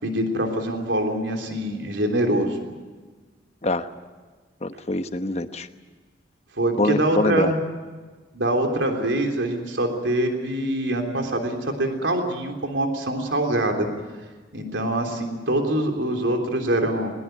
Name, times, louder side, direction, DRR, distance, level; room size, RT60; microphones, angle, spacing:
voice 1, 0.0-2.6 6.6-7.6 8.3-13.9 14.5-17.1, right 1 dB, 85° right, 3 dB, 3.4 m, -24 dB
voice 2, 4.6-5.7 6.8-7.5, left 2 dB, 35° left, 9 dB, 1.1 m, -24 dB
21.0 x 21.0 x 9.3 m, 1.4 s
head